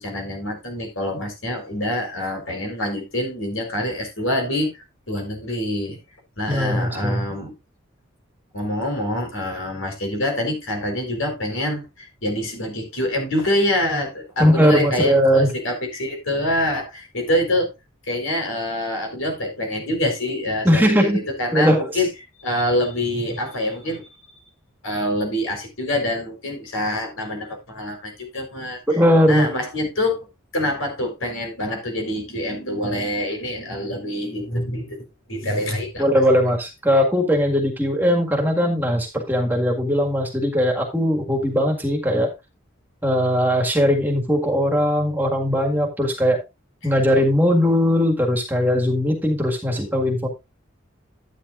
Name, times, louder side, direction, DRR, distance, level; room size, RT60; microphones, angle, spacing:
voice 1, 0.0-4.7 5.1-6.0 6.4-7.5 8.5-17.7 18.1-22.1 22.4-24.1 24.8-28.8 29.3-30.3 30.5-36.1, left 1 dB, 85° left, 4.2 m, -25 dB
voice 2, 6.5-7.2 14.4-15.5 20.6-21.3 21.5-21.9 28.9-29.5 36.0-42.3 43.0-46.4 46.8-50.3, equal, 10° right, 1.8 m, -19 dB
12.0 x 9.3 x 2.5 m
head